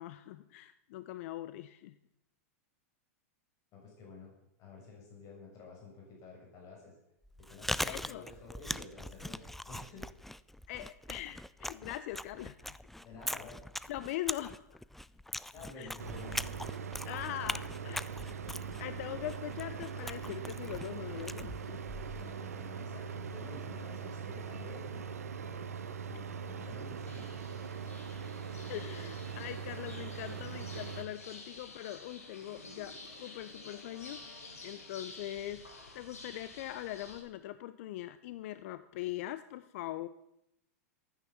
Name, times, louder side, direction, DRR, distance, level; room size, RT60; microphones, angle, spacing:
voice 1, 0.0-2.0 7.9-8.2 10.7-12.8 13.9-14.8 15.8-15.9 17.1-18.2 18.8-21.8 28.7-35.6 35.9-40.1, left 14 dB, 60° left, 13 dB, 0.6 m, -42 dB
voice 2, 3.7-6.9 7.4-10.1 13.0-13.6 15.5-16.4 22.1-27.5, left 3 dB, 45° left, -1 dB, 6.2 m, -51 dB
Chewing mastication, 7.2-22.3, left 1 dB, 5° left, 0.4 m, -41 dB
sound 1, 16.0-31.0, right 6 dB, 85° right, 1.1 m, -41 dB
sound 2, 27.1-37.2, left 3 dB, 90° left, 3.4 m, -51 dB
13.0 x 9.8 x 7.1 m, 0.82 s
hypercardioid pair, 105°, 8 cm